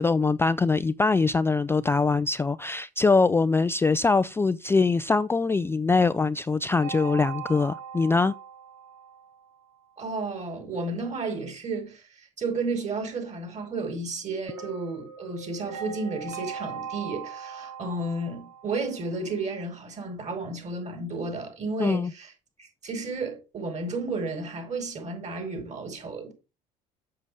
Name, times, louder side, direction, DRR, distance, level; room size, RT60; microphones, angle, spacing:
voice 1, 0.0-8.3 21.8-22.1, left 4 dB, 15° left, 0.3 m, -23 dB
sound 1, 6.8-9.8 14.5-19.5, right 7 dB, 85° right, 2.0 m, -40 dB
voice 2, 10.0-22.3 22.6-26.3, right 3 dB, 40° right, 4.7 m, -32 dB
7.5 x 6.7 x 4.8 m
supercardioid pair, 75°, 18 cm